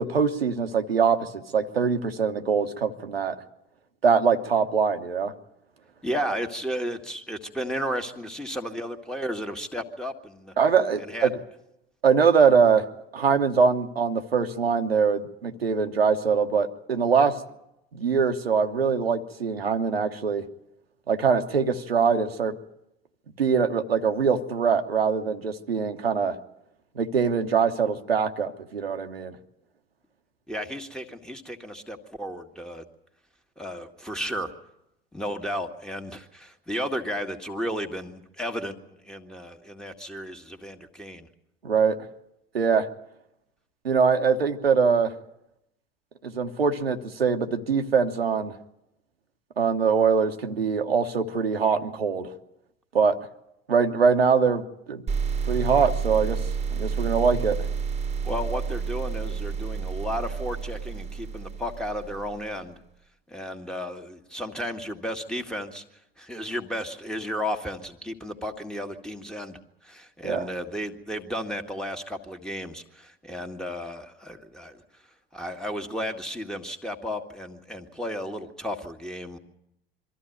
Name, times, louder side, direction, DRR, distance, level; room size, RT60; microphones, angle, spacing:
voice 1, 0.0-3.3 4.0-5.3 10.6-11.3 12.0-12.8 13.1-17.3 17.9-20.4 21.1-22.5 23.4-26.3 27.0-29.3 41.6-42.0 42.5-42.9 43.8-45.1 46.2-48.5 49.6-52.3 52.9-53.2 53.7-55.0 55.5-56.4 56.8-57.6 70.2-70.5, right 6 dB, 80° right, 6 dB, 1.1 m, -23 dB
voice 2, 6.0-10.5 11.0-11.3 30.5-32.9 33.6-34.5 35.1-41.3 58.2-62.8 63.3-65.8 66.2-74.8 75.3-79.4, equal, ahead, 5 dB, 1.8 m, -33 dB
sound 1, 55.1-62.6, right 6 dB, 20° right, 1.4 m, -30 dB
24.0 x 14.0 x 9.3 m, 0.87 s
figure-of-eight pair, 70°, 30 cm